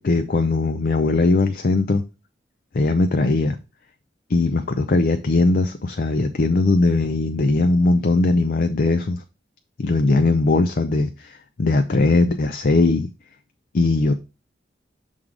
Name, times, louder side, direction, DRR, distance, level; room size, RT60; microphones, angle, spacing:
voice 1, 0.0-2.0 2.7-3.6 4.3-9.2 9.8-13.1 13.7-14.1, left 3 dB, 50° left, 0.5 m, -19 dB
6.4 x 3.7 x 4.7 m
head